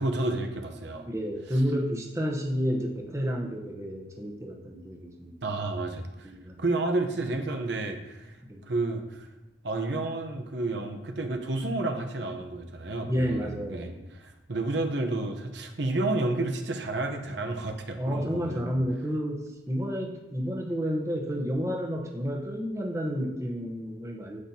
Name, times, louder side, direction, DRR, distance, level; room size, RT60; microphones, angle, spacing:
voice 1, 0.0-1.1 5.4-6.3 6.6-8.4 8.6-9.3 9.6-18.6, right 2 dB, 65° right, 5 dB, 0.9 m, -31 dB
voice 2, 1.0-5.3 6.2-6.6 8.4-8.6 13.0-14.0 18.0-24.4, equal, 15° right, 0 dB, 0.9 m, -30 dB
9.7 x 8.3 x 2.8 m, 0.96 s
head